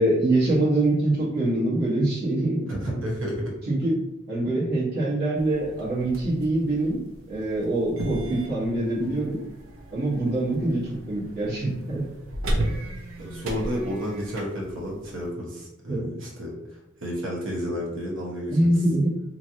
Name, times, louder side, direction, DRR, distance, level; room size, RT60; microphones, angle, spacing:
voice 1, 0.0-2.6 3.7-4.0 4.3-7.0 7.3-9.4 9.9-12.0 15.9-16.1 18.5-19.2, right 1 dB, 55° right, -7 dB, 1.3 m, -24 dB
voice 2, 2.7-3.4 13.2-16.5 17.0-18.7, equal, 70° right, -3 dB, 1.0 m, -31 dB
sound 1, 5.4-15.3, right 1 dB, 85° right, 0.6 m, -35 dB
3.1 x 2.7 x 2.7 m, 0.87 s
head